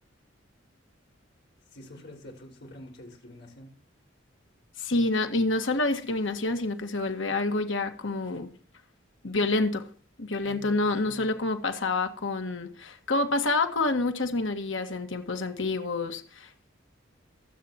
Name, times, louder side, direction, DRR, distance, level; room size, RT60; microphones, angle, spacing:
voice 1, 1.7-3.7 10.4-11.3, left 1 dB, 60° left, 5.2 m, -47 dB
voice 2, 4.8-8.5 9.2-9.9 10.2-16.7, left 2 dB, 75° left, 1.8 m, -28 dB
25.0 x 8.5 x 3.0 m
head